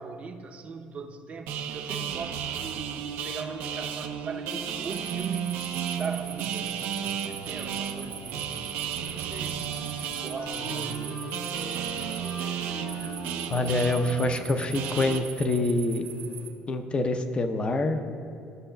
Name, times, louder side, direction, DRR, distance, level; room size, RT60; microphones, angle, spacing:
voice 1, 0.0-5.6 6.0-8.6 9.1-9.7 10.2-11.2, right 4 dB, 35° right, 5 dB, 0.6 m, -40 dB
sound 1, 1.5-15.2, right 8 dB, 80° right, 0.5 m, -33 dB
sound 2, 4.8-16.5, right 8 dB, 60° right, 0.9 m, -43 dB
Wind instrument woodwind instrument, 9.6-14.7, left 3 dB, 90° left, 1.1 m, -43 dB
voice 2, 13.5-16.1 16.7-18.0, left 2 dB, 30° left, 8 dB, 0.6 m, -26 dB
13.5 x 6.1 x 2.2 m, 2.7 s
cardioid pair, 110°, 4 cm